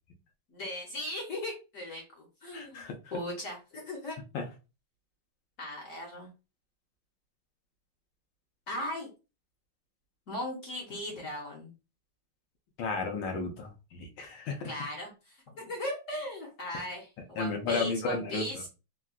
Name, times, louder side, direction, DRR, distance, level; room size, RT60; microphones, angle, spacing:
voice 1, 0.5-2.8 3.1-4.2 5.6-6.3 8.7-9.1 10.3-11.7 14.6-18.7, left 1 dB, 55° left, -1 dB, 1.0 m, -38 dB
voice 2, 2.5-2.9 4.3-4.4 12.8-14.6 17.4-18.4, left 4 dB, 85° left, 2 dB, 1.4 m, -33 dB
3.7 x 2.2 x 2.4 m, 0.30 s
omnidirectional pair, 2.0 m